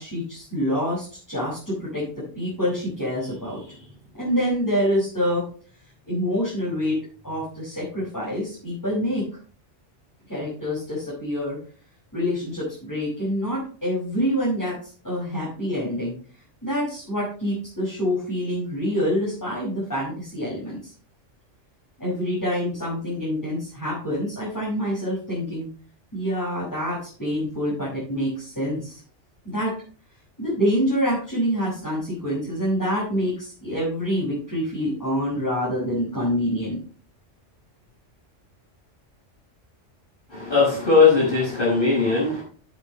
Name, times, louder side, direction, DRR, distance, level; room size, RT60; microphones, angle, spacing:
voice 1, 0.0-5.4 6.1-7.0 7.2-9.2 10.3-11.6 12.1-16.1 16.6-20.9 22.0-25.7 26.1-29.0 29.4-29.7 30.4-36.8, equal, 15° left, -9 dB, 6.5 m, -26 dB
voice 2, 40.3-42.4, left 4 dB, 45° left, -6 dB, 6.0 m, -19 dB
11.5 x 9.4 x 3.3 m, 0.41 s
omnidirectional pair, 1.2 m